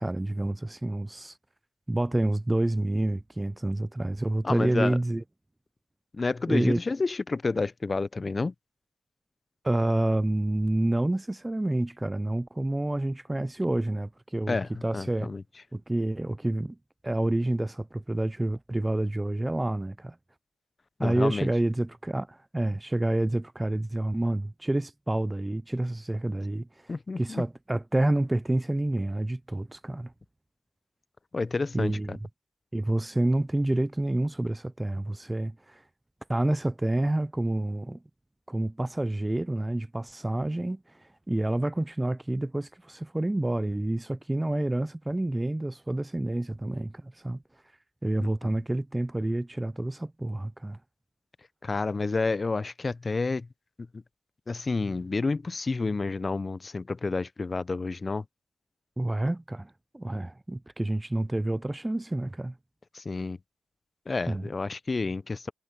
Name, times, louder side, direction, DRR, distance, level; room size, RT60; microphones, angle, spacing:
voice 1, 0.0-1.3 1.9-5.2 6.5-6.8 9.6-15.3 15.7-16.8 17.0-20.2 21.0-26.7 27.2-30.1 31.7-32.2 32.7-35.8 36.3-38.0 38.5-40.8 41.3-47.4 48.0-50.8 59.0-62.5 64.3-64.5, right 1 dB, 15° right, 0.4 m, -28 dB
voice 2, 4.4-5.0 6.1-8.5 14.5-14.7 14.9-15.4 21.0-21.5 26.9-27.4 31.3-32.2 48.4-48.5 51.6-53.5 53.9-54.0 54.5-58.2 62.9-63.4 64.1-65.5, left 3 dB, 35° left, 0.7 m, -29 dB
supercardioid pair, 55°, 0 cm